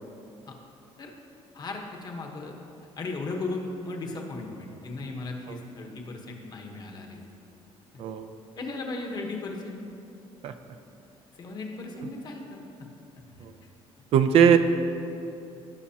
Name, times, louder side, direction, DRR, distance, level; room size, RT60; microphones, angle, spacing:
voice 1, 1.5-2.5 3.0-7.2 8.6-9.8 10.5-10.6 11.3-12.9 13.4-13.5, left 3 dB, 40° left, 2 dB, 1.1 m, -36 dB
voice 2, 8.0-8.3 10.4-10.5 12.0-12.1 13.4-13.5 14.1-14.6, right 8 dB, 60° right, 9 dB, 0.5 m, -20 dB
16.0 x 6.0 x 2.9 m, 2.8 s
cardioid pair, 135°, 11 cm